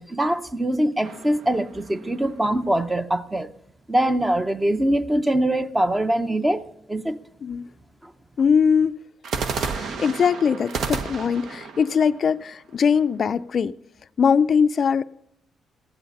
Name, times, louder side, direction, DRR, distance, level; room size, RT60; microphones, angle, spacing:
voice 1, 0.0-3.5 3.9-7.2 8.0-8.1, right 1 dB, 15° right, 0.7 m, -23 dB
sound 1, 1.0-2.5 9.2-13.2, right 5 dB, 70° right, 1.1 m, -32 dB
voice 2, 8.4-9.0 9.6-13.7 14.2-15.0, left 6 dB, 45° left, 0.4 m, -21 dB
15.5 x 11.0 x 5.4 m
cardioid pair, 120°, 0 cm